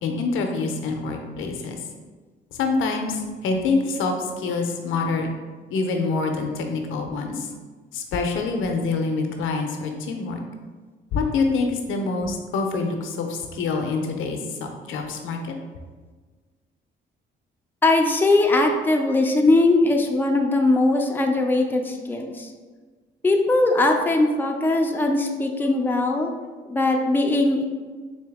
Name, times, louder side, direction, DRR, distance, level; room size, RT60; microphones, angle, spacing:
voice 1, 0.0-1.8 2.6-5.3 5.7-7.5 7.9-10.4 11.1-14.6 14.9-15.5, left 4 dB, 85° left, 4 dB, 0.6 m, -26 dB
voice 2, 17.8-22.5 23.2-26.3 26.7-27.6, left 2 dB, 10° left, 2 dB, 0.5 m, -20 dB
3.9 x 2.8 x 3.4 m, 1.4 s
cardioid pair, 90°, 20 cm